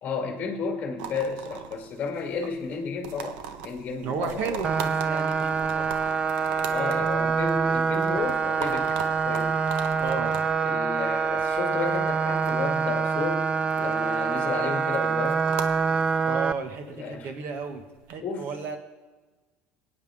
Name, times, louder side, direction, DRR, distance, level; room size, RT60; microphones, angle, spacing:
voice 1, 0.0-4.6 6.7-9.6 10.6-13.5 13.8-15.5 16.9-17.3 18.2-18.5, left 5 dB, 30° left, 2 dB, 2.1 m, -32 dB
sound 1, 1.0-18.1, right 7 dB, 90° right, 1.2 m, -41 dB
voice 2, 4.0-5.9 10.0-10.5 16.3-18.8, right 5 dB, 55° right, 6 dB, 1.7 m, -33 dB
sound 2, 4.6-16.5, right 5 dB, 20° right, 0.5 m, -25 dB
21.5 x 9.4 x 3.7 m, 1.3 s
cardioid pair, 145°, 4 cm